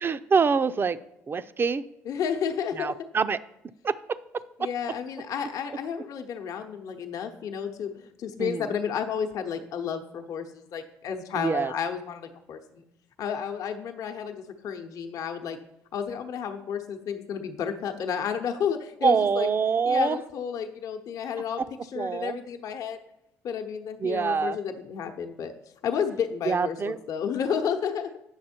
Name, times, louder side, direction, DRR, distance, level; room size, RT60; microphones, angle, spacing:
voice 1, 0.0-1.0 1.3-1.8 2.7-3.4 3.8-4.7 8.4-8.7 11.3-11.7 19.0-20.2 21.6-21.7 21.9-22.4 24.0-24.6 26.4-27.0, right 5 dB, 35° right, 14 dB, 0.5 m, -25 dB
voice 2, 2.1-2.9 4.6-12.8 13.2-15.6 15.9-19.5 19.9-21.6 21.9-23.0 23.4-25.5 25.8-28.1, left 7 dB, 65° left, 5 dB, 0.9 m, -31 dB
8.9 x 6.1 x 4.4 m, 0.86 s
hypercardioid pair, 60°, 6 cm